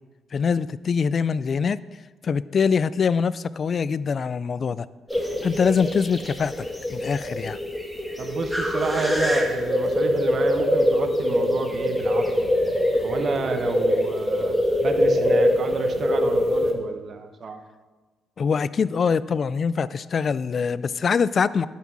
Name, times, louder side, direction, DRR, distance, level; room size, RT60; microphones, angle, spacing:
voice 1, 0.3-1.8 2.2-4.9 5.4-6.6 6.9-7.6 18.4-21.7, left 6 dB, 45° left, 17 dB, 0.3 m, -23 dB
sound 1, 5.1-16.7, left 1 dB, ahead, 1.7 m, -23 dB
voice 2, 8.2-12.5 13.0-17.6, right 4 dB, 50° right, 7 dB, 1.0 m, -30 dB
11.0 x 5.8 x 6.2 m, 1.3 s
cardioid pair, 90°, 0 cm